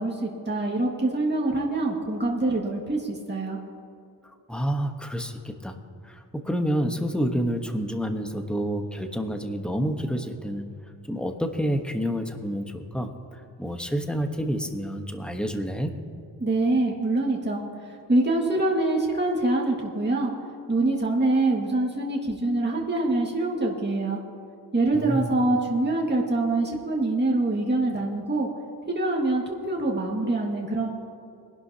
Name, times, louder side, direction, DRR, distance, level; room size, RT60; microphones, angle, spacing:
voice 1, 0.0-3.6 16.4-20.3 20.7-24.2 24.7-28.5 28.9-30.9, right 2 dB, 25° right, -2 dB, 1.9 m, -25 dB
voice 2, 4.5-5.7 6.0-10.7 11.1-16.0 24.9-25.3, equal, ahead, 4 dB, 1.1 m, -29 dB
22.5 x 11.5 x 2.9 m, 2.5 s
wide cardioid pair, 100°, 42 cm